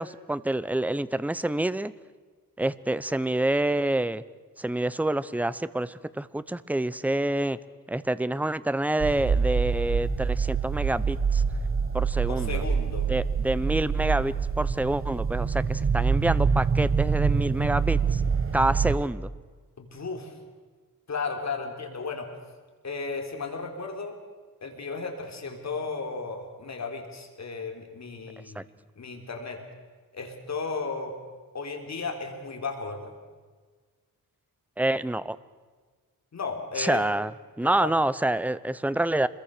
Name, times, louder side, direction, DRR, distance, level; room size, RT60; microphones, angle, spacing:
voice 1, 0.0-1.9 2.6-4.2 4.6-7.6 7.9-11.4 11.9-12.6 13.1-18.2 18.5-19.3 28.6-28.7 34.8-35.4 36.8-37.3 37.6-39.3, right 1 dB, 5° right, 16 dB, 0.7 m, -27 dB
sound 1, 9.0-19.0, right 5 dB, 35° right, 1.1 m, -25 dB
voice 2, 12.3-13.1 19.8-20.4 21.1-22.3 22.8-24.2 24.6-28.7 29.0-29.6 30.1-31.1 31.5-33.1 36.3-37.1 37.6-37.9, left 4 dB, 50° left, 3 dB, 3.7 m, -34 dB
26.5 x 22.0 x 6.7 m, 1.4 s
wide cardioid pair, 135°, 35 cm